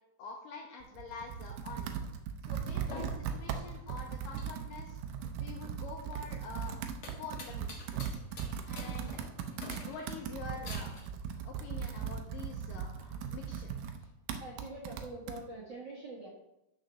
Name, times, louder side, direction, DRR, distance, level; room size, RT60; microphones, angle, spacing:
voice 1, 0.2-2.0 2.4-5.0 5.4-6.8 7.1-8.2 8.7-9.2 9.8-11.0 11.4-13.7, left 4 dB, 80° left, 1 dB, 2.0 m, -46 dB
Computer keyboard, 0.8-15.4, right 7 dB, 85° right, 1.8 m, -39 dB
sound 1, 2.6-11.1, left 3 dB, 65° left, 1.3 m, -49 dB
voice 2, 14.4-16.3, right 2 dB, 55° right, -4 dB, 1.3 m, -44 dB
6.6 x 5.9 x 6.3 m, 0.87 s
omnidirectional pair, 4.7 m